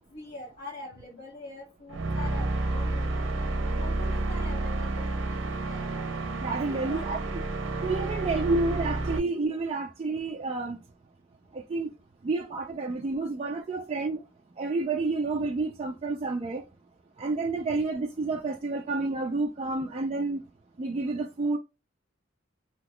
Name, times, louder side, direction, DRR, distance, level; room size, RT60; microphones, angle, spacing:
voice 1, 0.1-3.3 3.7-7.2 8.2-8.4, left 3 dB, 50° left, 1.3 m, -45 dB
sound 1, 1.9-9.2, right 2 dB, 70° right, 0.6 m, -30 dB
voice 2, 6.4-7.2 7.8-10.8 11.5-11.9 12.2-14.2 14.6-16.6 17.2-20.4 20.8-21.6, right 3 dB, 30° right, 0.3 m, -29 dB
2.9 x 2.2 x 3.7 m
head